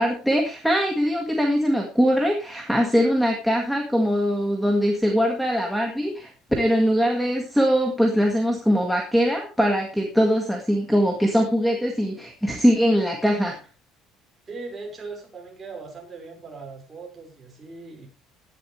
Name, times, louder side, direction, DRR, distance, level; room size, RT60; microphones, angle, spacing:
voice 1, 0.0-6.3 6.6-13.6, equal, ahead, 2 dB, 1.9 m, -22 dB
voice 2, 14.5-18.1, right 3 dB, 20° right, 0 dB, 5.5 m, -39 dB
16.5 x 11.0 x 3.3 m, 0.32 s
cardioid pair, 165°, 0 cm